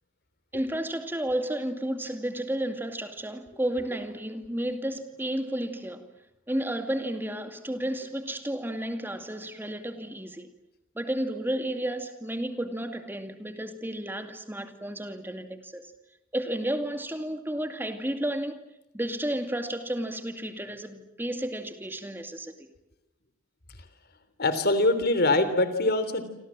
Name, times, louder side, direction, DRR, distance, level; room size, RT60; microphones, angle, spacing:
voice 1, 0.5-6.1 6.5-10.5 10.9-15.9 16.3-18.6 18.9-22.7, right 1 dB, 10° right, 2.4 m, -32 dB
voice 2, 24.4-26.2, left 2 dB, 50° left, 3.5 m, -23 dB
28.0 x 27.0 x 7.5 m
head